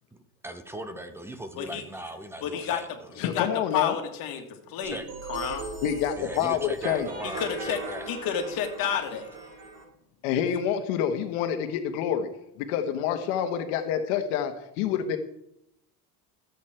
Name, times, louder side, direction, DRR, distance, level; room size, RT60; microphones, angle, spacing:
voice 1, 0.4-3.3 4.9-5.1 6.2-8.1, right 1 dB, 5° right, 8 dB, 0.8 m, -39 dB
voice 2, 2.4-2.8 3.2-3.5 3.7-5.0 5.3-5.6 7.2-7.8 8.1-9.3, left 8 dB, 50° left, 4 dB, 2.1 m, -30 dB
voice 3, 3.2-3.9 5.8-7.1 10.2-12.3 12.7-15.2, left 9 dB, 75° left, 6 dB, 1.4 m, -27 dB
sound 1, 4.8-9.8, right 3 dB, 75° right, 5.2 m, -38 dB
13.5 x 8.4 x 4.4 m, 0.81 s
cardioid pair, 155°, 45 cm